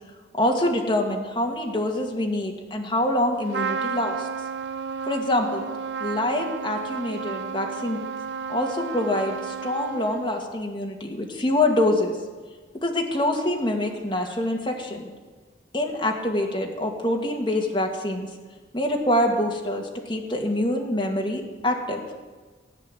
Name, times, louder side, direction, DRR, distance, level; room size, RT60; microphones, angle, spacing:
voice 1, 0.3-4.3 5.1-5.6 6.0-8.0 8.5-12.2 12.8-15.1 15.7-18.3 18.7-22.0, left 1 dB, 25° left, 1 dB, 2.0 m, -25 dB
Trumpet, 3.5-10.4, right 6 dB, 75° right, 0.5 m, -32 dB
16.0 x 9.1 x 7.8 m, 1.4 s
head